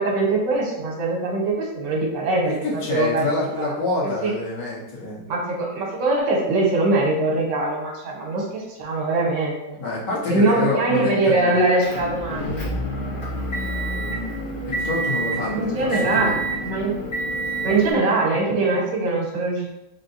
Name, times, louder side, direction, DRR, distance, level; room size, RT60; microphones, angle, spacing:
voice 1, 0.0-3.2 3.6-3.7 4.2-4.3 5.3-9.8 10.3-12.7 15.5-17.0 17.6-19.7, right 2 dB, 65° right, 0 dB, 1.5 m, -22 dB
voice 2, 2.4-5.2 9.8-11.6 14.6-16.5, left 2 dB, 60° left, -7 dB, 1.8 m, -27 dB
Motor vehicle (road) / Engine, 11.8-17.9, right 1 dB, 40° left, 0.8 m, -28 dB
4.0 x 2.2 x 3.9 m, 0.87 s
omnidirectional pair, 2.1 m